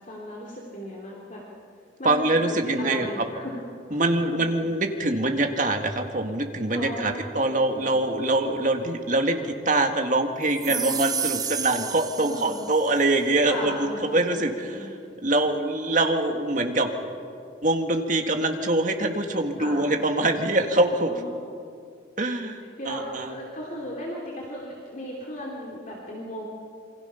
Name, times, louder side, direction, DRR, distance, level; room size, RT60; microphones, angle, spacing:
voice 1, 0.1-1.4 2.0-3.5 3.9-4.5 6.7-7.8 10.6-11.4 12.2-12.6 13.4-14.4 14.7-14.9 19.6-19.8 21.1-21.3 22.3-22.5 22.8-26.4, equal, 40° left, -3 dB, 2.9 m, -36 dB
voice 2, 2.0-3.3 3.9-14.9 15.2-16.9 17.6-21.1 22.2-23.3, right 2 dB, 45° right, 4 dB, 1.9 m, -24 dB
sound 1, 10.5-13.0, right 7 dB, 20° right, 0.7 m, -31 dB
27.5 x 25.0 x 5.7 m, 2.4 s
head